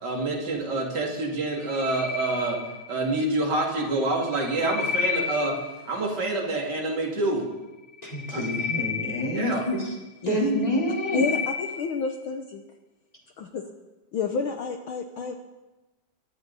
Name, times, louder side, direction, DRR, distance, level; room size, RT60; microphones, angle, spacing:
voice 1, 0.0-2.6 2.9-5.6 5.9-7.4 8.3-8.5 9.3-9.7, right 2 dB, 35° right, -1 dB, 2.8 m, -27 dB
ambienta-soundtrack mrfury resoechofilterfeedback, 1.6-3.1 4.0-5.9 7.9-10.0 10.4-12.0, left 6 dB, 40° left, 5.1 m, -32 dB
voice 2, 8.0-9.9 10.2-11.2, equal, 10° left, -3 dB, 3.8 m, -27 dB
voice 3, 11.1-12.6 13.4-13.6 14.1-15.3, left 5 dB, 75° left, 5 dB, 1.2 m, -30 dB
23.0 x 13.0 x 4.1 m, 1.1 s
omnidirectional pair, 3.4 m